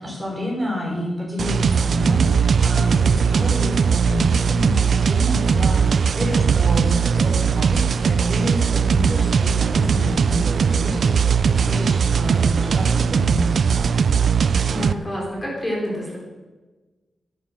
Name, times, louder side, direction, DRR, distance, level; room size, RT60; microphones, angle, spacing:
voice 1, 0.0-13.9, left 1 dB, 10° right, -2 dB, 5.2 m, -29 dB
sound 1, 1.4-14.9, right 6 dB, 55° right, 0.5 m, -19 dB
voice 2, 14.7-16.2, equal, 20° left, -3 dB, 4.1 m, -28 dB
15.5 x 11.5 x 7.4 m, 1.2 s
wide cardioid pair, 160°, 0 cm